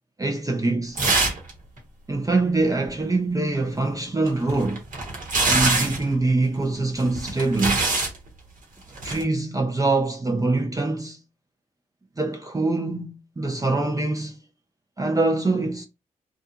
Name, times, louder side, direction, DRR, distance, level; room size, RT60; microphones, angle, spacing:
voice 1, 0.2-1.0 2.1-4.8 5.5-7.9 9.0-11.2 12.2-14.4 15.0-15.8, right 2 dB, 25° right, 0.6 m, -24 dB
sound 1, 1.0-1.5 1.8-1.9 4.3-6.1 7.0-8.2 9.0-9.2, right 3 dB, 60° right, 1.2 m, -23 dB
2.7 x 2.3 x 2.4 m
supercardioid pair, 50°, 15 cm